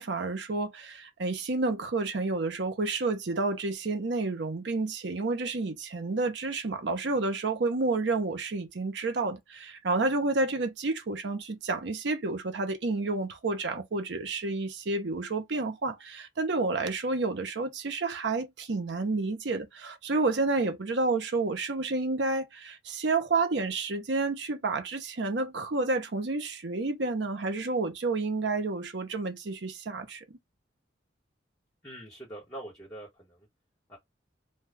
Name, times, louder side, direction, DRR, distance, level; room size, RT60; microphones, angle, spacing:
voice 1, 0.0-30.4, right 3 dB, 65° right, 0.6 m, -30 dB
voice 2, 31.8-33.5 33.9-34.0, right 1 dB, 15° left, 1.1 m, -44 dB
2.6 x 2.3 x 3.2 m
head